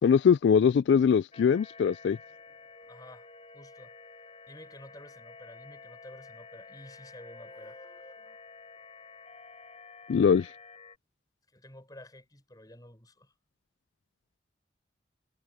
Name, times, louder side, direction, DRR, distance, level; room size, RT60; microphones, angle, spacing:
voice 1, 0.0-2.2 10.1-10.5, left 7 dB, 80° left, 0.3 m, -22 dB
sound 1, 1.3-11.0, left 4 dB, 35° left, 2.5 m, -50 dB
voice 2, 2.9-3.3 3.5-3.9 4.5-8.4 11.5-13.3, left 1 dB, 20° left, 6.5 m, -51 dB
head